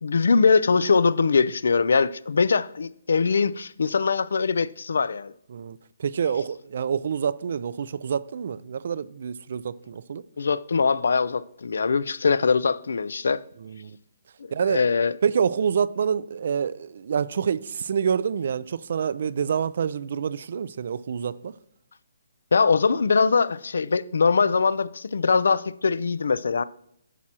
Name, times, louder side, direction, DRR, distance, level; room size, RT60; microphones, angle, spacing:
voice 1, 0.0-5.3 10.4-13.4 14.4-15.2 22.5-26.6, left 5 dB, 80° left, 0.3 m, -22 dB
voice 2, 5.5-10.2 13.6-14.0 14.5-14.8 15.2-21.5, right 7 dB, 60° right, 0.3 m, -27 dB
11.0 x 6.0 x 2.8 m
hypercardioid pair, 155°, 0 cm